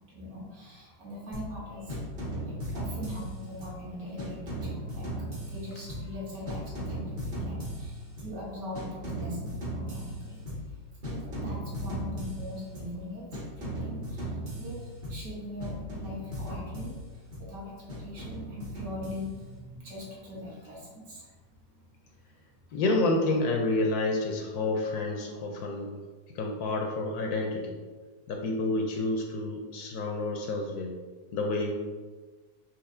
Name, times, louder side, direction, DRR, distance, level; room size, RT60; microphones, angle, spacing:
voice 1, 0.1-2.0 2.5-5.1 5.5-10.4 11.1-13.3 13.6-21.3 21.7-21.8, left 1 dB, 60° right, -5 dB, 1.7 m, -41 dB
sound 1, 1.3-1.6 1.9-3.8 4.2-6.2 6.5-8.4 8.7-10.7 11.0-13.0 13.3-15.3 15.6-17.5 17.9-19.5, right 1 dB, 35° right, 1.2 m, -37 dB
voice 2, 22.7-25.9 26.3-27.8 28.3-30.9 31.3-31.7, left 2 dB, 70° left, 2 dB, 1.0 m, -29 dB
4.7 x 2.8 x 3.7 m, 1.4 s
omnidirectional pair, 1.8 m